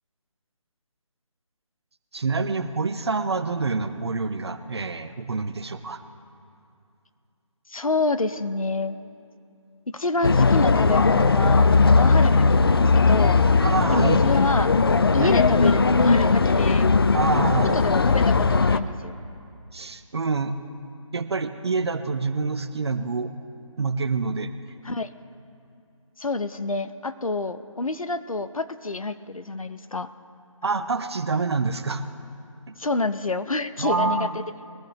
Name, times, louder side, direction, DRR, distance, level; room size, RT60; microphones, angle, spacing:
voice 1, 2.1-6.0 12.2-12.3 13.6-14.3 15.2-15.3 17.1-17.8 19.7-20.6 21.1-23.3 23.8-24.5 30.6-32.0 33.8-34.3, right 4 dB, 50° right, 10 dB, 0.7 m, -26 dB
voice 2, 7.7-9.0 9.9-13.4 13.9-14.7 15.1-16.9 17.7-19.2 24.8-25.1 26.2-30.1 32.8-34.4, left 3 dB, 85° left, 11 dB, 0.7 m, -27 dB
sound 1, 10.2-18.8, left 4 dB, 45° left, 0.4 m, -18 dB
21.5 x 14.0 x 3.0 m, 2.5 s
figure-of-eight pair, 155°, 17 cm